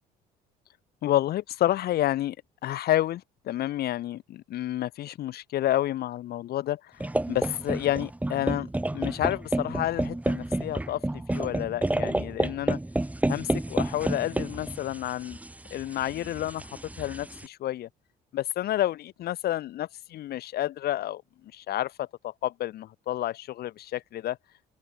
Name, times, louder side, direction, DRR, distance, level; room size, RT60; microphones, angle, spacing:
voice 1, 1.0-2.4 2.6-8.7 8.9-11.0 11.3-12.8 13.3-15.4 15.7-16.7 17.0-17.9 18.3-21.2 21.5-24.4, left 13 dB, 70° left, 3.9 m, -30 dB
sound 1, 7.0-17.4, right 1 dB, 10° right, 6.4 m, -30 dB
open air
cardioid pair, 110°, 17 cm